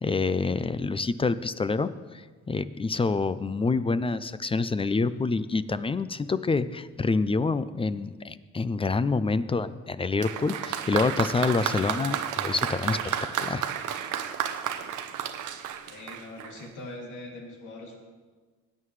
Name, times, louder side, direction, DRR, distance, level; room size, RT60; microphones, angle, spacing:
voice 1, 0.0-13.0 13.4-13.6, left 4 dB, 20° left, 15 dB, 0.4 m, -27 dB
Applause, 10.2-16.7, right 9 dB, 85° right, 0.8 m, -32 dB
voice 2, 15.9-18.0, left 2 dB, 85° left, -1 dB, 2.7 m, -42 dB
16.5 x 9.4 x 3.3 m, 1.4 s
cardioid pair, 90°, 30 cm